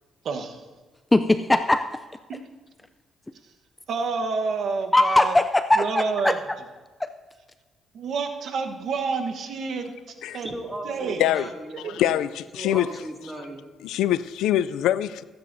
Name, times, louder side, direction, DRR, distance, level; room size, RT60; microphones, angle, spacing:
voice 1, 0.2-0.6 3.9-5.3 5.8-6.4 7.9-10.0 10.3-10.5 10.8-11.2 11.8-12.0, right 4 dB, 65° right, 5 dB, 1.1 m, -28 dB
voice 2, 1.1-2.0 4.9-6.3 7.0-7.1, left 2 dB, 15° left, 10 dB, 0.4 m, -20 dB
voice 3, 10.4-12.0 12.6-13.7, right 1 dB, 10° right, 1 dB, 2.1 m, -37 dB
voice 4, 11.9-12.9 13.8-15.2, left 12 dB, 90° left, 16 dB, 0.3 m, -24 dB
22.0 x 9.5 x 2.7 m, 1.3 s
cardioid pair, 90°, 0 cm